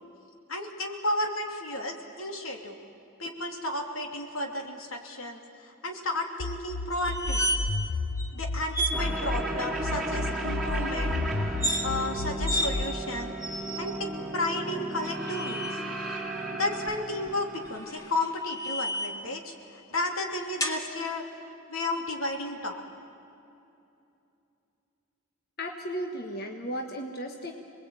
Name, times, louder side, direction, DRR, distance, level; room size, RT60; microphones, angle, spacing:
voice 1, 0.5-2.8 3.2-7.5 8.3-11.3 11.8-13.4 13.8-15.8 16.5-19.5 19.9-21.2 21.7-22.8, left 2 dB, 80° left, 3 dB, 3.0 m, -33 dB
sound 1, 6.4-9.4 9.8-12.8, left 2 dB, 65° left, 0.8 m, -32 dB
sound 2, 7.0-7.9 8.2-8.3 8.7-9.0 11.5-11.9 12.5-12.7 13.4-14.0 14.9-15.8 17.6-19.3 20.6-20.8, equal, 15° left, 1.9 m, -31 dB
sound 3, 8.9-17.9, right 1 dB, 5° right, 4.1 m, -34 dB
voice 2, 25.6-27.5, equal, 45° left, 3 dB, 1.5 m, -35 dB
27.5 x 21.0 x 9.1 m, 2.7 s
head